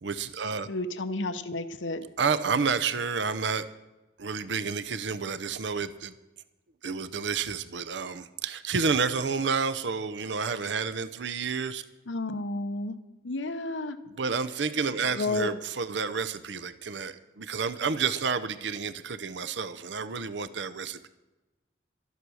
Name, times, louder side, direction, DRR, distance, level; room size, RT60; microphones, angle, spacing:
voice 1, 0.0-0.7 2.2-3.7 4.2-6.1 6.8-11.8 14.2-21.1, right 5 dB, 80° right, 0.7 m, -30 dB
voice 2, 0.7-2.1 12.1-13.0 13.2-14.0 15.1-15.5, left 2 dB, 90° left, 0.8 m, -31 dB
13.5 x 11.0 x 6.3 m
head